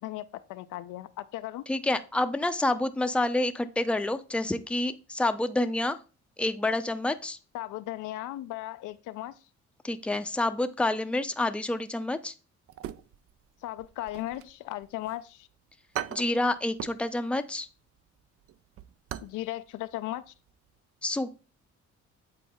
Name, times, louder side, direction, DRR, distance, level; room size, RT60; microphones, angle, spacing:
voice 1, 0.0-1.6 7.5-9.5 13.6-15.5 19.2-20.3, left 15 dB, 85° left, 0.5 m, -37 dB
voice 2, 1.7-6.0 6.4-7.4 9.8-12.3 16.1-17.7 21.0-21.3, left 2 dB, 5° left, 0.5 m, -28 dB
sound 1, 12.7-13.5 13.8-15.2 15.5-15.6 15.9-17.1 17.4-17.6 18.0-19.4 19.7-19.8 20.3-20.5 20.8-20.9, right 11 dB, 50° right, 0.4 m, -40 dB
7.9 x 4.1 x 3.6 m
cardioid pair, 90°, 30 cm